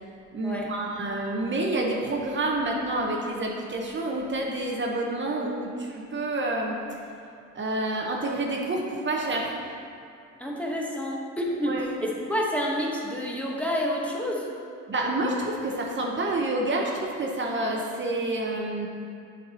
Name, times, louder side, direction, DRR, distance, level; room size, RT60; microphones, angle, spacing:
voice 1, 0.3-7.0 7.5-9.5 11.7-11.8 14.9-18.9, right 2 dB, 40° right, 0 dB, 0.9 m, -28 dB
voice 2, 10.4-14.5, equal, 5° left, -3 dB, 1.0 m, -29 dB
7.2 x 4.7 x 4.1 m, 2.4 s
cardioid pair, 90°, 30 cm